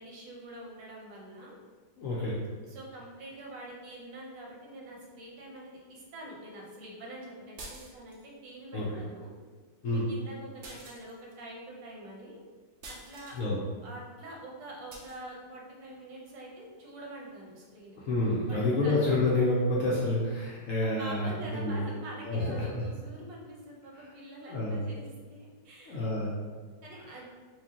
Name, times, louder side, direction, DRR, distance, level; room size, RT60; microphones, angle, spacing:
voice 1, 0.0-1.5 2.6-9.3 9.9-12.4 12.8-13.4 13.8-18.0 18.5-18.9 21.0-26.0 26.8-27.2, right 1 dB, 85° right, -3 dB, 1.5 m, -45 dB
voice 2, 2.0-2.4 8.7-8.9 9.8-10.0 13.4-13.6 18.1-21.8 22.2-22.8 24.5-24.8 25.9-26.3 27.1-27.2, left 2 dB, 65° left, -5 dB, 0.8 m, -28 dB
sound 1, 7.6-8.3 10.6-11.4 12.8-13.4 14.9-15.2, right 2 dB, 65° right, 0.6 m, -47 dB
4.5 x 2.5 x 2.8 m, 1.5 s
omnidirectional pair, 1.9 m